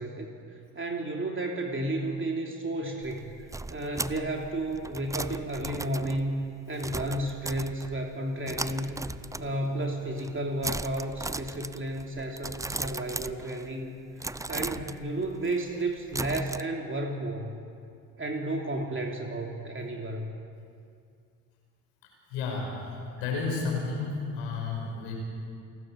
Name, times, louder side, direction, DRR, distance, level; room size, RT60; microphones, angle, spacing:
voice 1, 0.0-3.2 3.7-9.0 9.4-17.5 18.2-20.3, right 1 dB, 30° right, 1 dB, 3.0 m, -32 dB
sound 1, 3.0-8.1 8.5-9.8 10.1-10.4 10.6-13.8 14.2-16.6, right 2 dB, 10° right, 0.5 m, -37 dB
voice 2, 22.0-25.1, left 4 dB, 80° left, 0 dB, 5.4 m, -32 dB
28.5 x 12.5 x 7.5 m, 2.4 s
hypercardioid pair, 55°, 42 cm